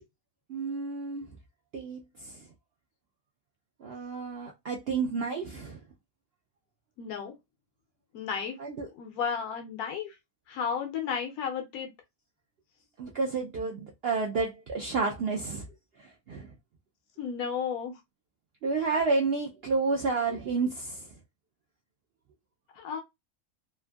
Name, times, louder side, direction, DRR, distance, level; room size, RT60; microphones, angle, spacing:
voice 1, 0.5-1.3 1.7-2.4 3.8-5.8 8.6-8.9 13.0-15.7 16.0-16.5 18.6-21.1, right 4 dB, 70° right, 0.5 m, -30 dB
voice 2, 7.0-7.3 8.1-8.6 8.9-10.1 10.5-11.9 17.2-17.9 22.7-23.0, left 7 dB, 85° left, 1.1 m, -33 dB
2.9 x 2.5 x 2.2 m
omnidirectional pair, 1.5 m